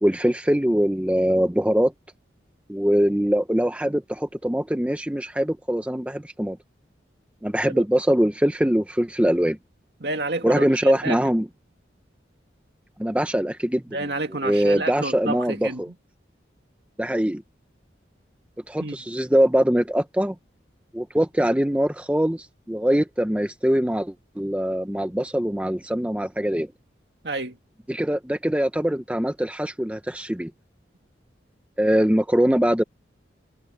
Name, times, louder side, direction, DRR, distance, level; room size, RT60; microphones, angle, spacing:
voice 1, 0.0-1.9 2.7-6.6 7.4-9.6 10.4-11.5 13.0-13.8 14.4-15.9 17.0-17.4 18.7-20.4 20.9-26.7 27.9-30.5 31.8-32.8, equal, 5° right, 0.6 m, -22 dB
voice 2, 10.0-11.2 13.9-15.8 18.8-19.0 27.2-27.6, right 2 dB, 65° right, 2.3 m, -29 dB
head